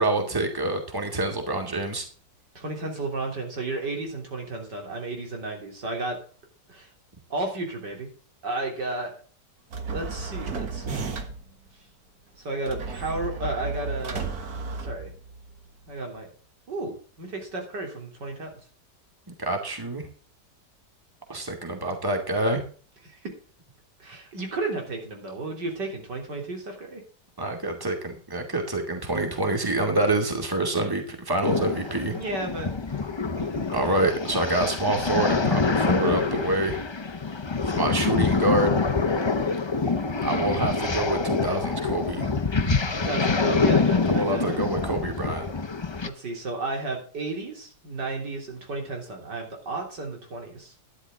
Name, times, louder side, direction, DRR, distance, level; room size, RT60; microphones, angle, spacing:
voice 1, 0.0-2.1 19.4-20.1 21.3-22.6 27.4-32.1 33.7-36.8 37.7-38.8 40.2-42.3 44.1-45.5, right 2 dB, 10° right, 3 dB, 2.4 m, -26 dB
voice 2, 2.6-6.2 6.7-6.9 7.3-8.1 8.4-9.1 9.9-11.2 12.4-14.4 14.8-15.1 15.9-16.3 16.7-18.5 23.1-23.3 24.0-27.0 32.2-33.6 42.9-44.7 46.0-50.7, right 2 dB, 80° right, 2 dB, 3.9 m, -33 dB
sound 1, 9.7-11.5 12.7-15.5, right 4 dB, 60° right, 2.0 m, -33 dB
sound 2, 31.4-46.1, left 4 dB, 40° left, 0.4 m, -26 dB
12.0 x 11.0 x 3.7 m, 0.40 s
omnidirectional pair, 1.8 m